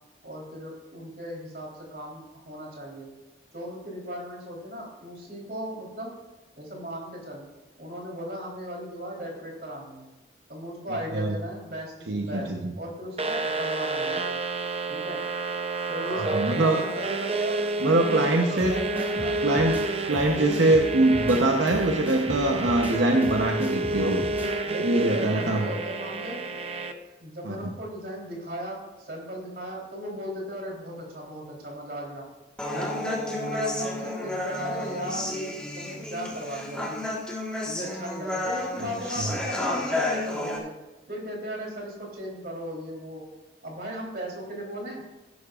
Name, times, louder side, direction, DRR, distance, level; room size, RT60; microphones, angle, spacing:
voice 1, 0.2-3.1 3.5-6.1 6.6-7.5 7.8-10.1 10.5-14.3 14.9-15.2 15.9-17.6 17.9-19.4 23.9-24.1 24.7-26.4 27.2-32.3 32.7-37.1 37.6-40.7 41.1-43.2 43.6-45.0, right 1 dB, 55° right, -2 dB, 3.6 m, -36 dB
voice 2, 12.1-12.7 16.1-16.8 17.8-18.8 19.4-24.2 24.8-25.7 27.4-27.7 39.2-39.3, right 2 dB, 90° right, 2 dB, 0.9 m, -23 dB
sound 1, 13.2-26.9, right 2 dB, 35° right, 0.6 m, -30 dB
sound 2, 18.6-24.6, equal, 10° right, 1.8 m, -38 dB
Human voice, 32.6-40.6, left 1 dB, 5° left, 1.6 m, -31 dB
16.0 x 11.5 x 2.5 m, 1.1 s
head